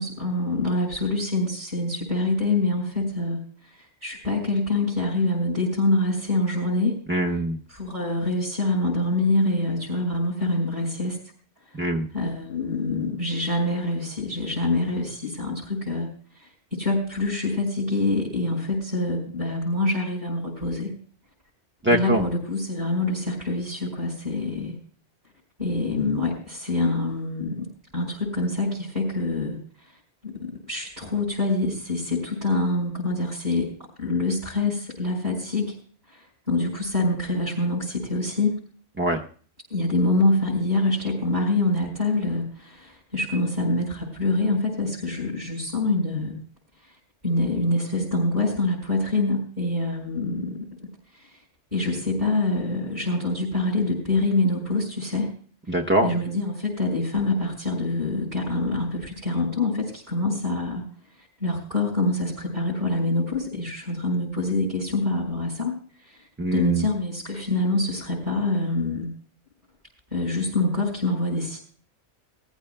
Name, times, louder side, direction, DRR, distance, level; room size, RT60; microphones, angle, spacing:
voice 1, 0.0-7.0 7.7-11.2 12.1-16.1 16.3-20.9 21.9-24.8 25.6-27.7 27.9-29.6 30.2-33.7 34.0-35.8 36.1-38.6 39.7-46.4 47.2-50.7 51.1-51.4 51.7-55.3 56.0-60.8 61.2-65.7 66.0-69.1 70.1-71.6, left 2 dB, 35° right, -6 dB, 5.1 m, -25 dB
voice 2, 7.1-7.6 11.7-12.1 21.8-22.2 39.0-39.2 55.7-56.2 66.4-66.9, right 1 dB, 10° right, 2 dB, 0.6 m, -23 dB
20.5 x 14.5 x 2.2 m, 0.44 s
omnidirectional pair, 1.2 m